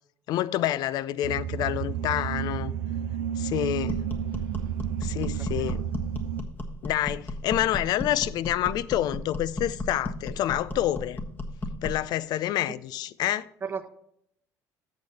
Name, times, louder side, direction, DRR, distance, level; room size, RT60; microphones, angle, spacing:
voice 1, 0.3-2.7 3.4-4.0 5.0-5.8 6.8-11.2 11.8-13.5, left 12 dB, 65° left, 0.4 m, -28 dB
sound 1, 1.2-6.4, right 9 dB, 80° right, 0.5 m, -31 dB
sound 2, 3.9-12.1, left 1 dB, 25° left, 1.4 m, -35 dB
voice 2, 5.2-5.7 13.6-13.9, right 6 dB, 30° right, 0.8 m, -36 dB
8.2 x 6.5 x 4.2 m
supercardioid pair, 75°, 8 cm